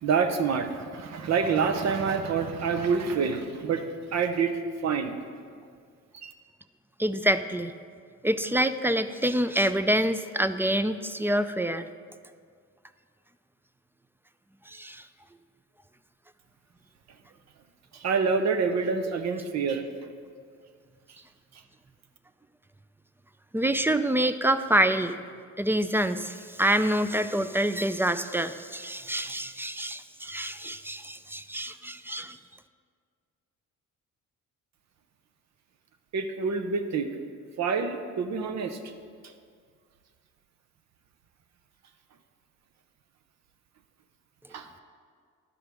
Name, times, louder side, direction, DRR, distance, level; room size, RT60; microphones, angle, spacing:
voice 1, 0.0-5.2 6.2-6.3 17.9-19.9 21.1-21.2 21.5-21.6 36.1-37.1 37.6-38.9 44.5-44.7, right 5 dB, 65° right, 7 dB, 0.8 m, -27 dB
voice 2, 7.0-7.7 8.2-11.9 14.7-15.0 23.5-25.2 25.6-32.4, right 1 dB, 10° right, 11 dB, 0.3 m, -26 dB
11.5 x 5.1 x 6.1 m, 2.1 s
cardioid pair, 90°, 30 cm